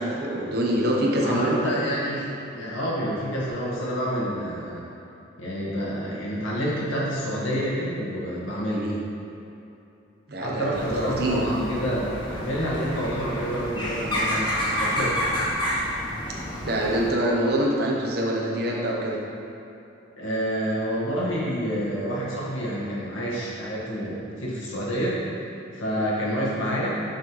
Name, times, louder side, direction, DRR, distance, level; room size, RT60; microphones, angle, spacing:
voice 1, 0.0-1.6 8.7-9.0 10.3-11.4 16.6-19.2 25.9-26.0, right 1 dB, 55° right, -2 dB, 0.8 m, -25 dB
voice 2, 1.2-4.8 5.4-8.9 10.4-15.2 20.2-25.2 25.7-27.0, equal, 85° left, -6 dB, 1.4 m, -28 dB
sound 1, 10.7-17.1, equal, 25° left, 1.0 m, -29 dB
6.4 x 3.1 x 5.3 m, 2.8 s
head